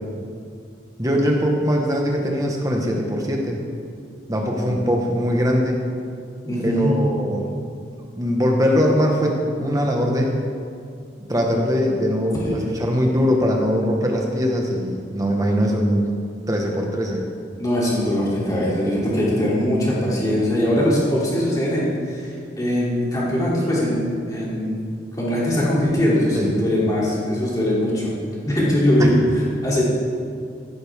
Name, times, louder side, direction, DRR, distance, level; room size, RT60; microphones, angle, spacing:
voice 1, 1.0-3.6 4.3-5.8 6.6-7.5 8.1-10.4 11.3-16.0 16.5-17.2 26.3-26.5 29.0-29.1, equal, 20° right, 0 dB, 1.4 m, -21 dB
voice 2, 6.4-7.0 12.4-12.6 17.6-24.7 25.2-28.1 28.4-29.9, left 1 dB, 20° left, -7 dB, 3.0 m, -21 dB
14.5 x 11.5 x 3.6 m, 2.3 s
head